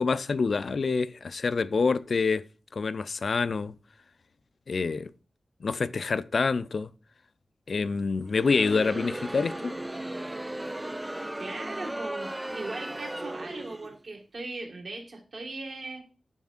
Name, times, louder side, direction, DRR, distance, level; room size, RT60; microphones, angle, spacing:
voice 1, 0.0-2.4 2.7-3.8 4.7-5.1 5.6-6.9 7.7-9.7, left 4 dB, 60° left, 0.3 m, -27 dB
Crowd, 8.2-14.0, right 1 dB, 15° right, 0.4 m, -36 dB
voice 2, 11.4-16.0, right 2 dB, 70° right, 1.6 m, -39 dB
7.0 x 6.3 x 2.4 m
wide cardioid pair, 115°, 0 cm